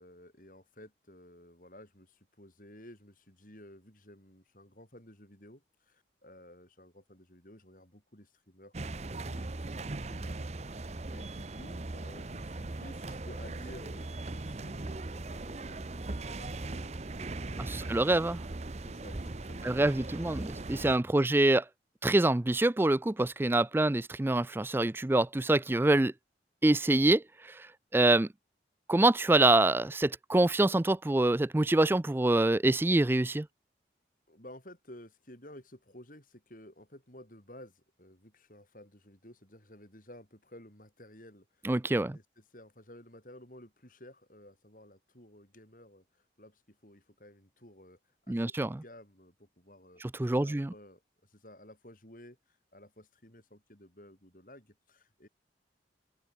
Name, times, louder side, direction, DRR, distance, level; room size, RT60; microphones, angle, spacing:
voice 1, 0.0-8.9 9.3-17.9 18.8-20.1 34.3-48.0 48.3-50.0 50.3-55.3, left 1 dB, 50° left, 7.3 m, -54 dB
sound 1, 8.7-21.0, right 2 dB, 35° right, 0.8 m, -39 dB
voice 2, 17.6-18.4 19.6-21.6 22.0-26.1 26.6-27.7 27.9-28.3 28.9-33.5 41.6-42.2 48.3-48.8 50.2-50.7, right 2 dB, 10° right, 0.3 m, -25 dB
open air
head